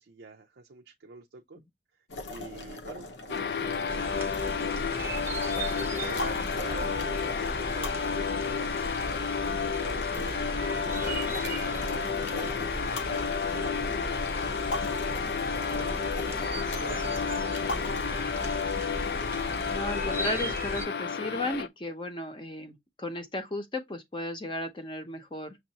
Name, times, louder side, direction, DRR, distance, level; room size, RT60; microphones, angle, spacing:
voice 1, 0.0-1.6 2.2-5.4 6.0-9.2 9.8-16.1 16.6-19.2, right 4 dB, 80° right, 0.5 m, -46 dB
sound 1, 2.1-19.8, left 2 dB, 90° left, 0.9 m, -41 dB
sound 2, 3.3-21.7, left 6 dB, 70° left, 0.5 m, -31 dB
sound 3, 3.9-20.9, right 2 dB, 15° right, 0.7 m, -37 dB
voice 2, 19.7-25.6, left 1 dB, 30° left, 0.7 m, -35 dB
6.3 x 2.4 x 2.8 m
head